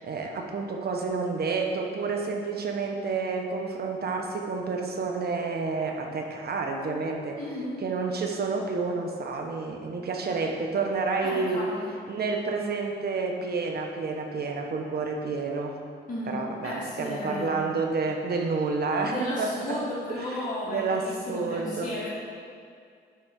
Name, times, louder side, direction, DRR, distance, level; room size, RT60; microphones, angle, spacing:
voice 1, 0.0-7.4 7.8-11.7 12.1-15.8 16.3-19.8 20.2-20.4 20.6-21.9, right 4 dB, 55° right, 2 dB, 1.2 m, -29 dB
voice 2, 7.4-7.8 11.2-11.9 16.1-17.7 19.0-22.1, left 1 dB, 45° left, -7 dB, 2.0 m, -34 dB
10.5 x 4.1 x 5.9 m, 2.3 s
cardioid pair, 90°, 19 cm